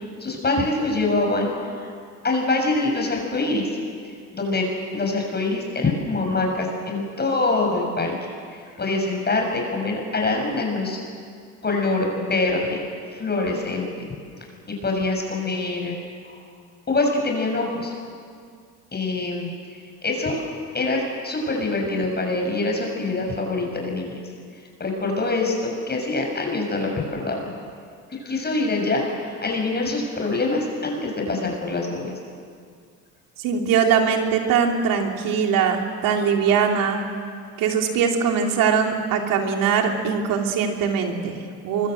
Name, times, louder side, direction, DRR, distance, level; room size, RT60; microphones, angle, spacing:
voice 1, 0.2-1.5 1.8-1.9 2.2-3.7 4.3-4.7 4.9-8.1 8.5-11.0 11.6-12.9 13.1-14.1 14.7-15.9 16.2-16.4 16.9-17.9 18.9-19.5 20.0-20.4 20.7-24.2 24.8-27.5 28.1-32.1, left 2 dB, 30° left, 1 dB, 6.8 m, -24 dB
voice 2, 33.4-37.0 37.6-41.9, right 6 dB, 70° right, 2 dB, 3.4 m, -21 dB
24.0 x 23.0 x 7.9 m, 2.2 s
supercardioid pair, 75°, 34 cm